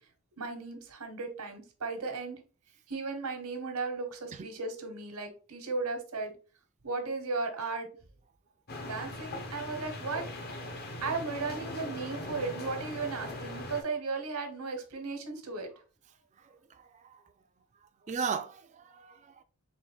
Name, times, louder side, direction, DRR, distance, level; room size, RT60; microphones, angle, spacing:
voice 1, 0.4-2.4 2.9-6.3 6.8-7.9 8.8-10.2 11.0-15.7, right 4 dB, 85° right, 1.1 m, -36 dB
sound 1, 8.7-13.8, left 1 dB, 45° left, 0.7 m, -40 dB
voice 2, 16.7-17.1 18.1-19.4, right 6 dB, 30° right, 0.3 m, -36 dB
3.8 x 3.0 x 3.4 m
head